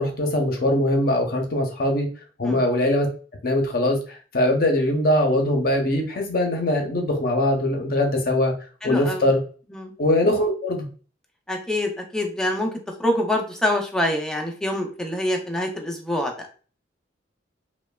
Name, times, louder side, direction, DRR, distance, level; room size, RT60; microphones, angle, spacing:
voice 1, 0.0-2.1 2.4-3.1 3.4-8.5 8.8-9.4 10.0-10.9, left 1 dB, 55° left, 3 dB, 0.6 m, -21 dB
voice 2, 8.8-9.3 9.7-9.9 11.5-12.7 13.0-16.5, left 1 dB, 5° left, 1 dB, 0.4 m, -25 dB
3.0 x 2.1 x 2.2 m, 0.39 s
head